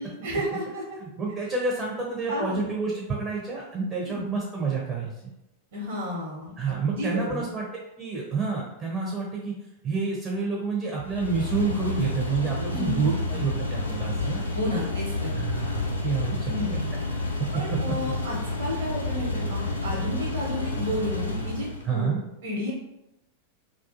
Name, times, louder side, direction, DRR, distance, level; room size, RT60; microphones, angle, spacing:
voice 1, 0.0-0.8 2.3-2.7 4.0-4.3 5.7-7.5 12.7-13.1 13.3-13.4 14.5-15.3 16.5-16.9 17.5-22.1 22.4-22.7, left 1 dB, 60° right, -4 dB, 1.0 m, -32 dB
voice 2, 1.0-5.1 6.6-7.6 8.0-9.5 9.8-14.4 15.4-16.8 21.8-22.2, right 4 dB, 25° right, -3 dB, 0.5 m, -29 dB
sound 1, 11.0-21.9, left 2 dB, 80° left, 0.5 m, -30 dB
2.4 x 2.3 x 2.5 m, 0.89 s
figure-of-eight pair, 90°, 0 cm